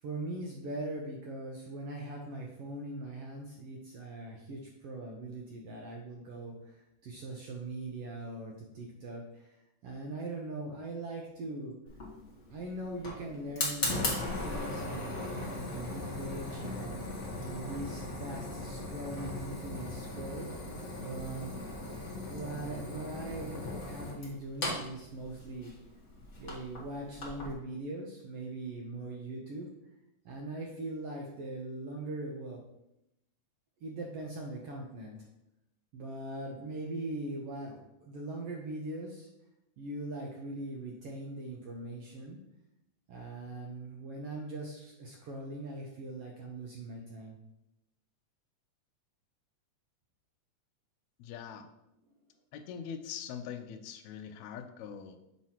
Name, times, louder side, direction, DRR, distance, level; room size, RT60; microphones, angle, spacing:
voice 1, 0.0-11.7 12.5-17.0 17.5-20.5 21.0-21.6 22.3-25.7 26.4-29.7 30.2-32.6 33.8-35.2 35.9-39.3 39.8-42.4 43.1-47.4, right 2 dB, 70° right, -1 dB, 1.5 m, -41 dB
Fire, 11.9-27.5, left 2 dB, 40° left, 1.0 m, -38 dB
voice 2, 51.2-51.6 52.5-55.2, left 8 dB, 80° left, 6 dB, 1.7 m, -42 dB
7.3 x 3.1 x 5.6 m, 0.86 s
omnidirectional pair, 3.5 m